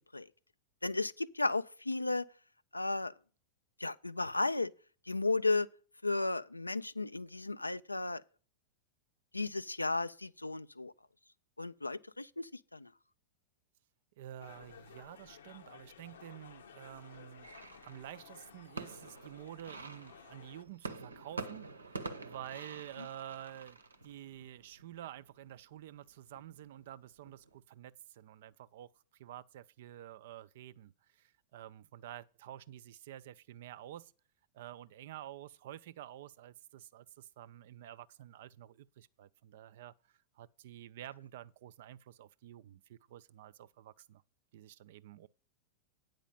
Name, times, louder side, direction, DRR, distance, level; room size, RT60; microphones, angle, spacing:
voice 1, 0.8-2.3 2.7-3.1 3.8-4.7 5.1-5.7 6.0-8.2 9.3-10.9 11.6-12.9, left 3 dB, 85° left, 0.4 m, -34 dB
voice 2, 14.2-17.5 17.8-28.9 29.2-34.1 34.5-39.9 40.4-44.2 44.5-45.3, right 12 dB, 55° right, 0.5 m, -50 dB
sound 1, 14.4-20.6, left 7 dB, 70° left, 0.8 m, -56 dB
sound 2, 17.4-27.6, right 3 dB, 80° right, 0.8 m, -47 dB
9.0 x 5.0 x 7.4 m
figure-of-eight pair, 95°, 0 cm